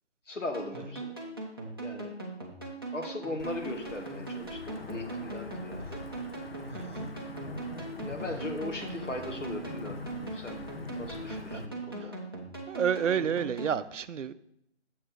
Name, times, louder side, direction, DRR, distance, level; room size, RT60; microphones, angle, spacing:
voice 1, 0.3-1.1 1.8-2.1 2.9-6.0 8.0-10.0 10.3-10.6 10.9-12.2, left 2 dB, 90° left, 4 dB, 1.5 m, -38 dB
sound 1, 0.5-13.8, right 2 dB, 20° right, 0.6 m, -40 dB
Wind / Thunder / Rain, 3.4-11.7, left 2 dB, 55° left, 0.8 m, -43 dB
voice 2, 6.7-7.1 11.3-11.4 12.0-12.1 12.7-14.3, right 8 dB, 85° right, 14 dB, 0.5 m, -30 dB
7.2 x 4.8 x 4.5 m, 0.76 s
figure-of-eight pair, 165°, 36 cm